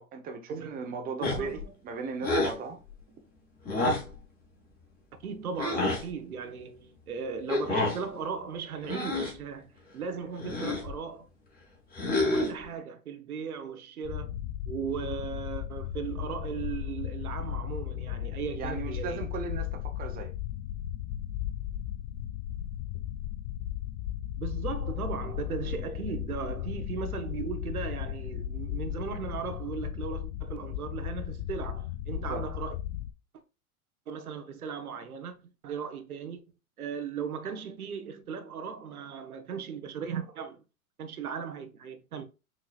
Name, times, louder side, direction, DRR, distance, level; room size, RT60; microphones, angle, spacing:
voice 1, 0.0-1.6 1.8-2.8 18.6-20.3 32.2-32.4, right 5 dB, 20° right, 0.8 m, -37 dB
sound 1, 1.2-1.6 2.2-2.6 3.7-4.1 5.6-6.0 7.5-8.0 8.8-9.4 10.4-10.9 11.9-12.6, left 2 dB, 20° left, 1.9 m, -28 dB
voice 2, 1.2-1.7 5.2-9.7 9.9-11.3 12.2-14.3 14.7-19.3 24.4-32.8 34.1-36.4 36.8-40.6 41.0-42.2, right 6 dB, 85° right, 1.0 m, -37 dB
sound 2, 14.0-33.1, left 11 dB, 40° left, 0.4 m, -36 dB
6.1 x 3.2 x 2.4 m
hypercardioid pair, 115°, 43 cm